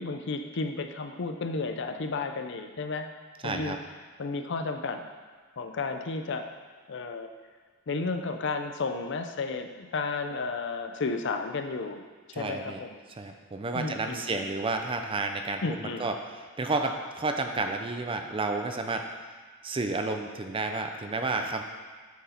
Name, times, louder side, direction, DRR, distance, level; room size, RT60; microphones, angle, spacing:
voice 1, 0.0-3.1 3.4-3.8 4.2-5.0 5.6-6.5 6.9-7.3 7.9-12.0 12.4-13.0 13.7-14.5 15.6-16.1, left 3 dB, 60° left, 6 dB, 0.5 m, -32 dB
voice 2, 3.4-3.8 12.3-12.8 13.2-19.0 19.6-21.6, right 3 dB, 25° right, 5 dB, 0.5 m, -31 dB
8.1 x 4.7 x 4.3 m, 1.5 s
head